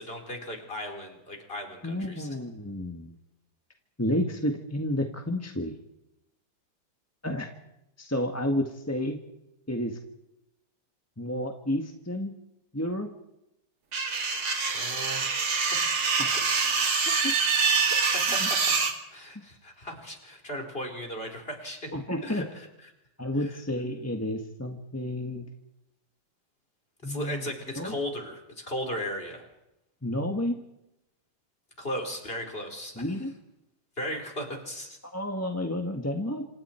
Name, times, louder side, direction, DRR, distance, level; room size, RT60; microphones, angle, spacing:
voice 1, 0.0-2.3 14.7-15.3 15.7-16.4 17.0-17.2 17.8-18.7 19.1-21.9 22.2-22.9 23.4-23.6 27.0-29.4 31.8-33.1 34.0-35.0, equal, 25° left, 2 dB, 4.4 m, -37 dB
voice 2, 1.8-3.1 4.0-5.7 7.2-7.5 8.0-9.2 9.7-10.0 11.2-12.3 12.7-13.1 16.2-16.3 17.1-17.3 18.4-18.5 19.3-19.4 21.9-22.4 23.2-25.5 27.0-27.5 27.7-28.0 30.0-30.6 33.0-33.3 35.1-36.4, left 1 dB, 10° left, 3 dB, 1.3 m, -30 dB
sound 1, 13.9-18.9, right 5 dB, 75° right, 3.1 m, -25 dB
27.5 x 27.0 x 4.5 m, 0.87 s
omnidirectional pair, 2.3 m